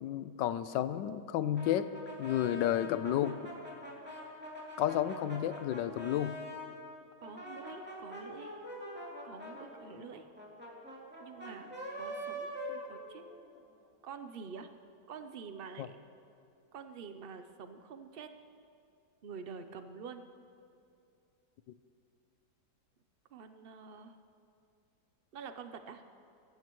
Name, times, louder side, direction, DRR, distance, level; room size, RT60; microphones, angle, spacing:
voice 1, 0.0-1.9 2.2-3.4 4.8-6.4 15.8-15.9, left 11 dB, 85° left, 13 dB, 1.3 m, -31 dB
Brass instrument, 1.5-6.7 7.2-13.5, equal, 5° right, 2.6 m, -44 dB
voice 2, 7.2-8.7 9.2-10.3 11.2-13.2 14.0-14.7 15.1-16.0 16.7-18.3 19.2-20.2 23.3-24.2 25.3-26.0, right 6 dB, 80° right, 8 dB, 0.5 m, -47 dB
24.5 x 15.0 x 3.1 m, 2.5 s
omnidirectional pair, 1.9 m